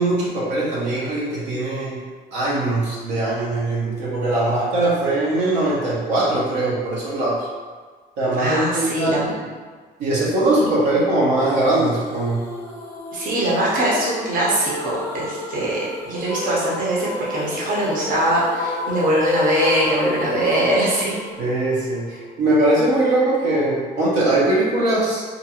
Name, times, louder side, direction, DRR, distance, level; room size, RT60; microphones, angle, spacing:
voice 1, 0.0-2.0 2.3-7.5 8.2-9.3 10.0-12.4 21.4-25.2, right 2 dB, 85° right, -7 dB, 0.8 m, -21 dB
voice 2, 8.4-9.4 13.1-21.2, right 1 dB, 55° right, -6 dB, 0.8 m, -22 dB
sound 1, 11.5-22.4, left 2 dB, 15° left, 0.6 m, -31 dB
2.5 x 2.2 x 2.8 m, 1.5 s
cardioid pair, 110°, 17 cm